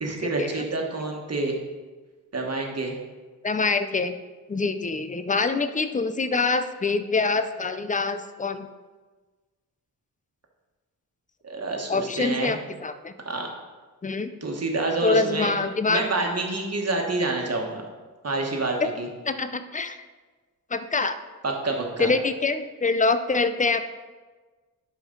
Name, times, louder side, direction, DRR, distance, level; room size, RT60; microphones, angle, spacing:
voice 1, 0.0-1.5 2.3-3.0 11.4-12.5 13.2-13.5 14.4-15.5 15.9-17.8 18.2-19.1 21.4-22.1, right 3 dB, 40° right, 1 dB, 1.4 m, -27 dB
voice 2, 3.4-4.2 4.5-8.7 11.9-13.1 14.0-14.3 15.0-16.0 18.8-18.9 19.2-20.0 20.7-21.2 22.0-23.9, left 4 dB, 20° left, 11 dB, 0.4 m, -25 dB
11.0 x 5.1 x 3.9 m, 1.3 s
wide cardioid pair, 105°, 37 cm